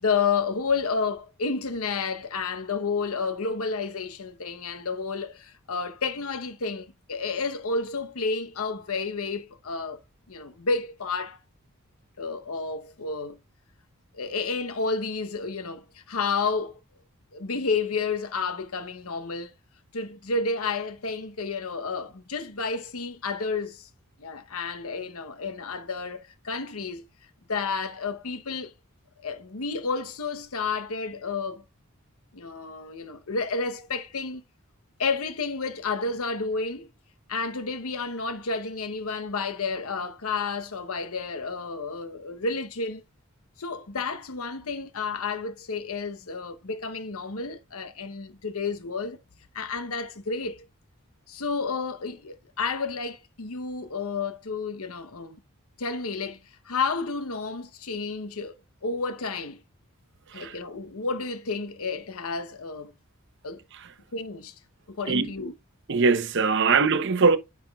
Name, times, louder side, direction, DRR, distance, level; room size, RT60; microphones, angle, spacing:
voice 1, 0.0-10.0 10.3-11.4 12.2-13.4 14.1-16.8 17.3-19.5 19.9-23.9 24.2-27.1 27.5-28.7 29.2-31.6 32.3-34.4 35.0-36.9 37.3-43.0 43.6-49.2 49.5-50.6 51.3-55.4 55.8-58.6 58.8-59.6 60.3-62.9 63.4-63.6 64.1-64.5 64.9-65.5, left 4 dB, 75° left, 0.9 m, -31 dB
voice 2, 65.9-67.4, right 4 dB, 55° right, 0.8 m, -22 dB
9.8 x 5.9 x 2.3 m
head